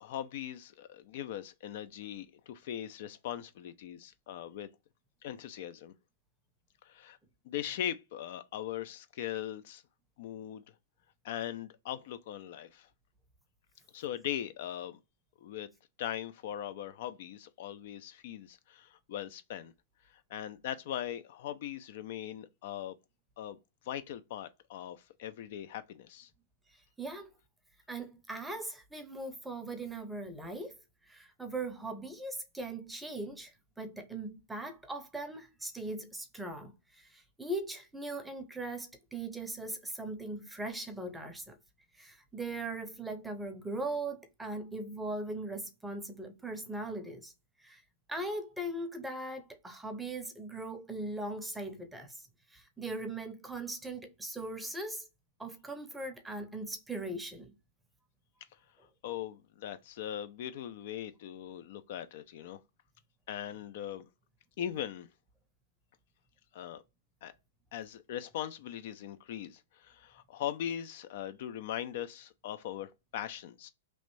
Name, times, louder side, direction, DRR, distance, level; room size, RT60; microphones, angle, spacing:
voice 1, 0.0-4.7 5.2-5.9 6.8-7.2 7.5-9.8 10.2-10.6 11.2-12.9 13.9-15.0 15.4-15.7 16.0-19.7 20.1-23.0 23.4-23.6 23.9-26.3 59.0-62.6 63.3-64.1 64.6-65.1 66.5-66.8 67.2-67.3 67.7-73.7, left 11 dB, 55° left, 0.4 m, -40 dB
voice 2, 27.0-27.3 27.9-30.7 31.1-41.6 42.0-47.3 47.6-47.8 48.1-52.2 52.5-55.1 55.4-57.5, right 2 dB, 5° right, 0.6 m, -40 dB
3.0 x 2.6 x 3.1 m
hypercardioid pair, 140°, 0 cm